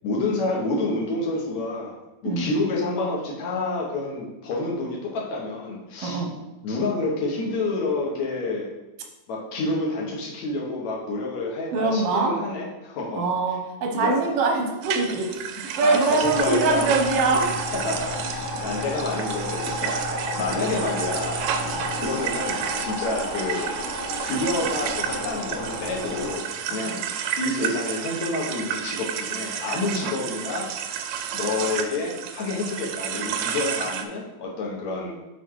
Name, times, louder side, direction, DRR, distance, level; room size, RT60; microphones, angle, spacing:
voice 1, 0.0-1.9 2.2-6.2 6.6-8.7 9.3-13.3 13.9-14.2 15.1-15.2 15.7-17.0 17.7-20.0 20.4-21.4 22.0-23.7 24.2-27.0 27.4-30.7 31.3-35.1, left 2 dB, 65° left, -3 dB, 2.4 m, -28 dB
voice 2, 6.0-6.3 11.7-12.4 13.1-15.3 15.8-17.5 19.6-20.9 21.6-21.9 26.8-27.0 30.0-30.1, right 3 dB, 65° right, 2 dB, 1.6 m, -24 dB
sound 1, 14.8-34.0, right 8 dB, 85° right, 2.1 m, -31 dB
sound 2, 16.2-26.4, left 1 dB, 40° left, 2.7 m, -31 dB
6.9 x 4.2 x 4.6 m, 1.0 s
omnidirectional pair, 3.7 m